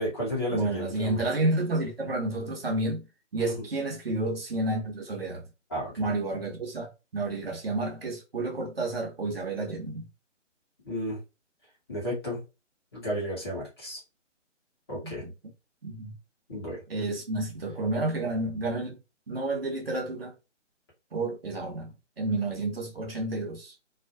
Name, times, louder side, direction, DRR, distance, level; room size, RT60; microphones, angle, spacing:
voice 1, 0.0-1.3 3.4-3.7 5.7-6.0 10.8-11.2 11.9-12.4 12.9-14.0 14.9-15.2 16.5-16.8, equal, 20° left, 0.9 m, -32 dB
voice 2, 0.5-3.1 3.3-5.4 6.0-10.0 15.0-15.3 15.8-16.1 16.9-19.0 19.3-20.3 21.1-21.9 22.2-23.7, right 2 dB, 50° right, 0.7 m, -30 dB
2.3 x 2.1 x 2.6 m
figure-of-eight pair, 145°, 37 cm